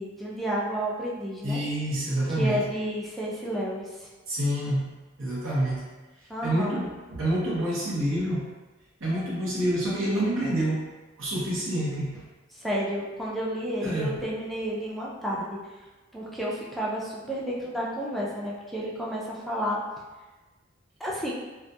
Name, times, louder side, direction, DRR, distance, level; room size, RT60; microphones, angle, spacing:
voice 1, 0.0-1.6 2.4-4.1 6.3-6.8 12.5-15.6 16.1-19.8 21.0-21.3, equal, ahead, -6 dB, 0.3 m, -31 dB
voice 2, 1.4-2.6 4.3-4.9 5.2-5.9 6.4-8.5 9.0-10.9 11.2-12.2 13.8-14.2, right 1 dB, 85° right, -6 dB, 0.7 m, -27 dB
2.3 x 2.2 x 2.6 m, 1.2 s
head